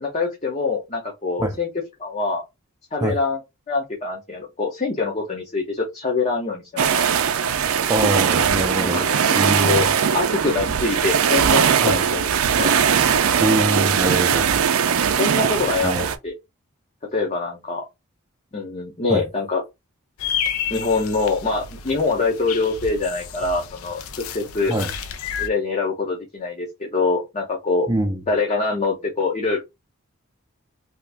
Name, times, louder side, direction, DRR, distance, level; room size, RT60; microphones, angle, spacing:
voice 1, 0.0-1.7 2.0-2.4 2.9-3.4 3.7-7.0 8.8-9.9 10.1-12.2 12.5-12.7 15.2-16.3 17.1-17.8 18.5-19.6 20.7-24.7 25.4-27.9 28.3-29.6, left 3 dB, 30° left, 0.7 m, -24 dB
sound 1, 6.8-16.2, right 7 dB, 70° right, 0.4 m, -20 dB
voice 2, 7.9-9.0 9.3-9.8 11.8-12.0 13.4-14.5 15.8-16.0 19.1-19.3 24.7-24.9 27.9-28.2, right 1 dB, 15° right, 0.4 m, -23 dB
sound 2, 20.2-25.5, left 8 dB, 70° left, 0.4 m, -31 dB
2.8 x 2.5 x 3.3 m
head